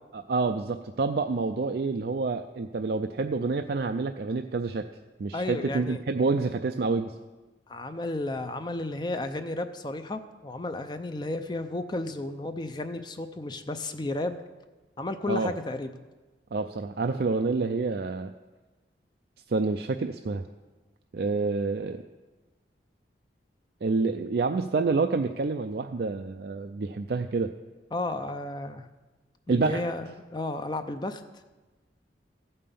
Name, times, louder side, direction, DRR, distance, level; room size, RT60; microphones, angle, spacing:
voice 1, 0.1-4.9 5.2-7.1 15.3-15.5 16.5-18.3 19.5-20.5 21.1-22.0 23.8-27.5 29.5-29.8, right 4 dB, 60° right, 6 dB, 0.4 m, -28 dB
voice 2, 5.3-6.0 7.7-14.4 15.0-15.9 27.9-28.9 29.5-31.2, left 2 dB, 25° left, 8 dB, 0.5 m, -33 dB
15.0 x 5.6 x 6.9 m, 1.2 s
head